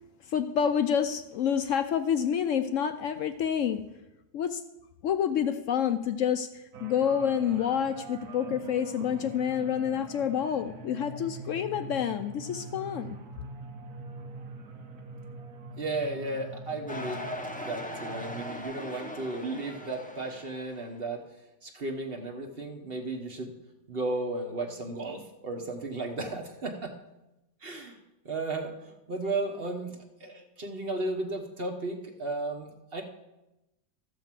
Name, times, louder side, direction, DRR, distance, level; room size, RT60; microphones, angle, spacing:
voice 1, 0.3-3.8 4.3-4.6 5.0-13.2, left 8 dB, 70° left, 9 dB, 0.9 m, -28 dB
sound 1, 6.7-18.6, right 3 dB, 80° right, 1.4 m, -44 dB
voice 2, 15.8-17.3 17.6-21.2 21.6-23.5 23.9-26.9 27.6-28.0 28.2-33.0, right 2 dB, 40° right, 3 dB, 1.3 m, -34 dB
sound 2, 16.9-21.0, left 1 dB, 10° left, 0.6 m, -40 dB
13.5 x 5.2 x 7.5 m, 0.97 s
omnidirectional pair, 1.5 m